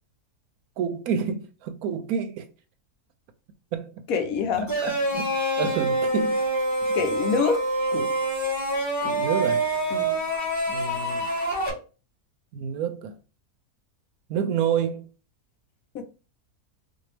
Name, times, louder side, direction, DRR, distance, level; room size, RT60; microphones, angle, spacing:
voice 1, 0.8-2.5 3.7-4.0 4.6-6.4 7.9-8.2 9.0-9.6 10.7-11.3 12.5-13.2 14.3-15.0, right 7 dB, 75° right, 1.0 m, -29 dB
voice 2, 4.1-4.7 6.9-7.6 9.9-10.2 15.9-16.0, left 5 dB, 70° left, 1.0 m, -25 dB
sound 1, 4.7-11.7, right 1 dB, 10° left, 1.3 m, -26 dB
4.4 x 2.6 x 3.2 m
omnidirectional pair, 1.6 m